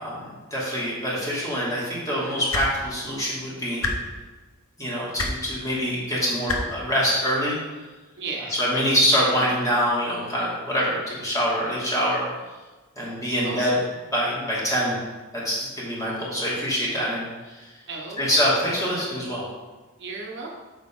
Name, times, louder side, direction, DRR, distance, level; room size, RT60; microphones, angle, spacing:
voice 1, 0.5-3.9 4.8-7.6 8.5-12.2 13.0-13.7 14.1-15.0 15.3-17.3 18.2-19.4, equal, 15° left, -7 dB, 2.7 m, -25 dB
voice 2, 2.2-2.7 8.2-8.6 13.0-13.1 13.4-13.8 17.9-18.5 20.0-20.5, right 3 dB, 55° right, -1 dB, 1.1 m, -35 dB
sound 1, 2.5-2.7 3.8-3.9 5.2-5.3 6.5-6.6 7.8-7.9, left 3 dB, 70° left, 1.1 m, -25 dB
7.8 x 7.2 x 3.8 m, 1.2 s
head